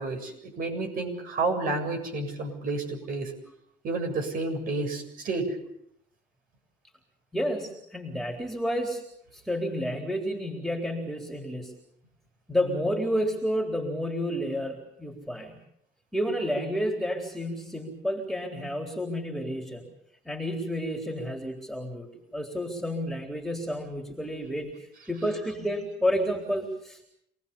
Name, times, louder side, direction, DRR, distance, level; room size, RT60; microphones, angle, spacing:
voice 1, 0.0-3.3 3.8-5.6, right 3 dB, 55° right, 4 dB, 7.5 m, -30 dB
voice 2, 7.3-9.0 9.3-11.7 12.5-15.5 16.1-19.9 20.3-24.7 25.1-27.0, equal, ahead, 0 dB, 4.0 m, -30 dB
27.5 x 19.0 x 7.2 m, 0.74 s
cardioid pair, 110°, 17 cm